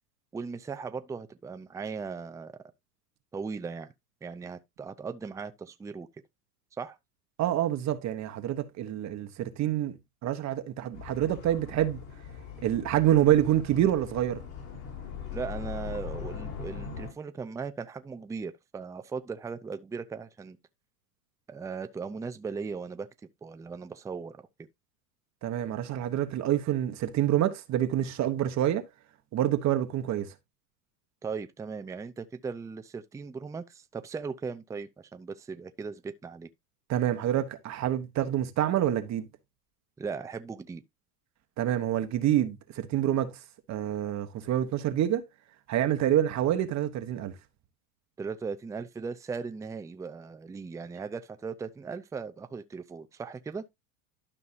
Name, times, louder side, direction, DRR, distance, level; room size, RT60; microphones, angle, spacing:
voice 1, 0.3-2.5 3.3-3.9 4.2-6.1 6.8-7.0 15.3-20.6 21.5-23.1 23.4-24.4 31.2-36.5 40.0-40.8 48.2-53.6, right 5 dB, 5° right, 0.5 m, -38 dB
voice 2, 7.4-10.0 10.2-12.0 12.6-14.4 25.4-28.8 29.3-30.3 36.9-39.3 41.6-43.4 43.7-45.2 45.7-47.4, right 12 dB, 35° right, 1.2 m, -27 dB
sound 1, 10.9-17.1, left 7 dB, 65° left, 5.0 m, -40 dB
12.5 x 5.4 x 2.7 m
hypercardioid pair, 100°, 45 cm